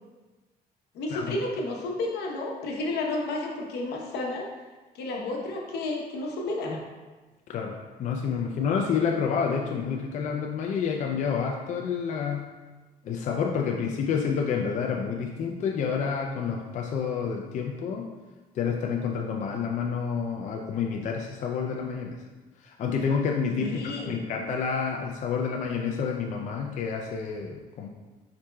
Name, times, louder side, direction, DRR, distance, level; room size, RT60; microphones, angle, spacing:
voice 1, 0.9-4.5 4.9-6.8 23.6-24.2, left 2 dB, 80° left, 0 dB, 0.8 m, -31 dB
voice 2, 7.5-12.5 13.0-18.1 18.5-22.2 22.6-27.9, left 6 dB, 45° left, 1 dB, 0.4 m, -29 dB
4.9 x 4.1 x 2.2 m, 1.3 s
cardioid pair, 110°, 17 cm